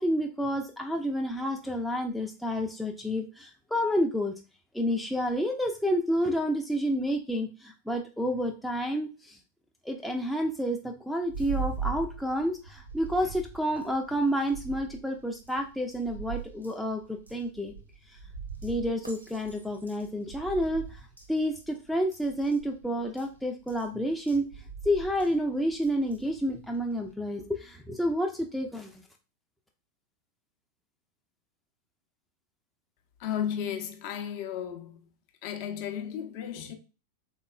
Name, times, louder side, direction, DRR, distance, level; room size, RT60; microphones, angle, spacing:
voice 1, 0.0-4.3 4.7-9.4 9.8-17.7 18.1-18.2 18.6-29.0, equal, ahead, 0.4 m, -29 dB
sound 1, 11.2-27.1, right 6 dB, 85° right, 0.7 m, -41 dB
voice 2, 33.2-35.1 35.4-36.7, left 9 dB, 45° left, 0.6 m, -34 dB
3.5 x 3.0 x 2.3 m
figure-of-eight pair, 90°, 0 cm